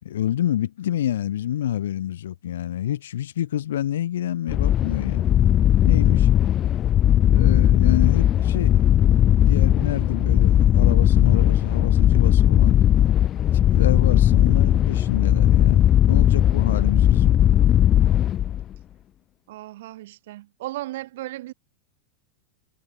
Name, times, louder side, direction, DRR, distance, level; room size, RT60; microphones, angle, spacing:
voice 1, 0.0-5.2 5.8-6.3 7.3-8.7 9.4-12.7 13.5-17.4, left 11 dB, 90° left, 3.4 m, -28 dB
sound 1, 4.5-18.7, left 11 dB, 30° left, 0.9 m, -18 dB
voice 2, 19.5-21.5, right 16 dB, 70° right, 6.8 m, -35 dB
supercardioid pair, 140°, 0 cm